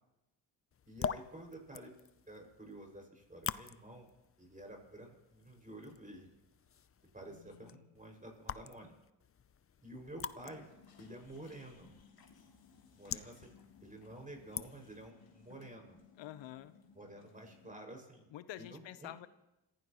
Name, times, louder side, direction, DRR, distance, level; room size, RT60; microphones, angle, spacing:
sound 1, 0.7-15.1, left 7 dB, 30° left, 0.6 m, -47 dB
voice 1, 0.9-1.9 2.3-4.1 4.4-6.3 7.1-8.9 9.8-10.7 11.0-11.9 12.9-13.5 13.8-16.0 16.9-18.3 18.6-19.1, right 1 dB, 15° right, 2 dB, 5.9 m, -50 dB
voice 2, 7.3-7.9 13.0-13.2 16.2-16.8 18.3-19.3, left 13 dB, 75° left, 14 dB, 0.9 m, -49 dB
sound 2, 10.5-17.7, left 5 dB, 50° left, 2.5 m, -62 dB
26.5 x 16.0 x 3.1 m, 0.93 s
supercardioid pair, 55°, 45 cm